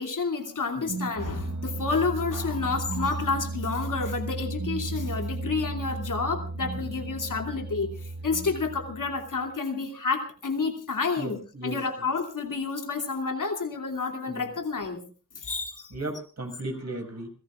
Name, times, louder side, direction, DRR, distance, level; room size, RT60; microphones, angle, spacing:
voice 1, 0.0-15.0 15.3-15.9, left 4 dB, 85° left, 4 dB, 2.8 m, -30 dB
sound 1, 0.7-9.5, right 2 dB, 75° right, 1.9 m, -34 dB
voice 2, 11.2-11.8 14.3-14.5 15.9-17.3, right 2 dB, 55° right, 2 dB, 5.9 m, -36 dB
28.0 x 17.0 x 2.5 m, 0.38 s
cardioid pair, 40°, 31 cm